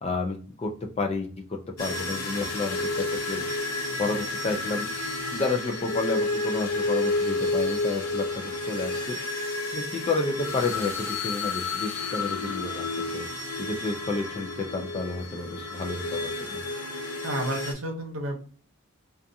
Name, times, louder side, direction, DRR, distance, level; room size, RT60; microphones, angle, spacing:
voice 1, 0.0-0.7 1.0-3.4 4.0-4.9 5.3-9.2 9.7-12.8 13.1-13.3 13.6-16.6, left 3 dB, 25° left, 3 dB, 0.3 m, -30 dB
sound 1, 1.8-17.7, left 2 dB, 85° left, 0.7 m, -31 dB
voice 2, 17.2-18.4, right 1 dB, 60° right, 2 dB, 0.7 m, -31 dB
2.5 x 2.3 x 2.6 m, 0.41 s
head